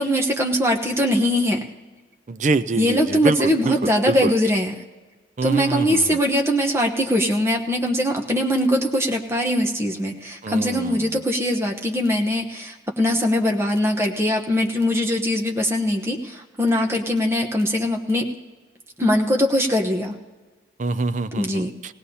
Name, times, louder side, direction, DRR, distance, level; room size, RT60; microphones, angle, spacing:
voice 1, 0.0-1.6 2.8-4.8 5.4-18.3 19.0-20.2 21.3-21.7, equal, 15° right, 1 dB, 0.9 m, -21 dB
voice 2, 2.3-3.4 3.6-3.7 4.1-4.3 5.4-6.0 10.4-11.1 20.8-21.7, right 3 dB, 40° right, 12 dB, 0.4 m, -24 dB
19.5 x 17.0 x 2.8 m, 1.4 s
head